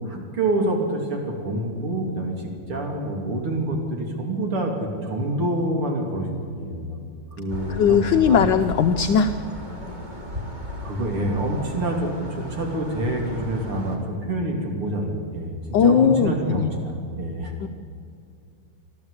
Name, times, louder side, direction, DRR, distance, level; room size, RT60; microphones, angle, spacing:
voice 1, 0.1-7.0 7.3-8.5 10.8-15.5 15.8-17.5, right 1 dB, 85° right, 2 dB, 3.7 m, -27 dB
sound 1, 7.5-14.0, left 1 dB, 20° right, 2.7 m, -35 dB
voice 2, 7.7-9.3 15.7-16.7 17.6-17.7, left 7 dB, 70° left, 8 dB, 1.2 m, -18 dB
24.5 x 14.0 x 8.2 m, 2.3 s
omnidirectional pair, 2.4 m